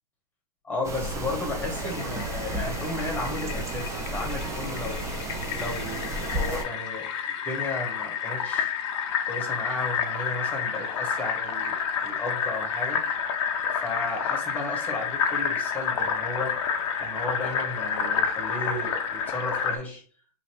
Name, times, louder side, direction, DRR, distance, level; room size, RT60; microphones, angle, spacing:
voice 1, 0.6-5.0 5.5-6.0 6.3-7.1 7.4-8.7 9.2-13.0 13.7-16.6 17.0-20.0, left 2 dB, 10° left, 0 dB, 1.1 m, -34 dB
sound 1, 0.8-6.6, right 1 dB, 15° right, 0.5 m, -32 dB
Fill (with liquid), 1.8-19.8, left 7 dB, 45° left, 0.5 m, -30 dB
2.8 x 2.6 x 4.3 m, 0.42 s
hypercardioid pair, 120°, 20 cm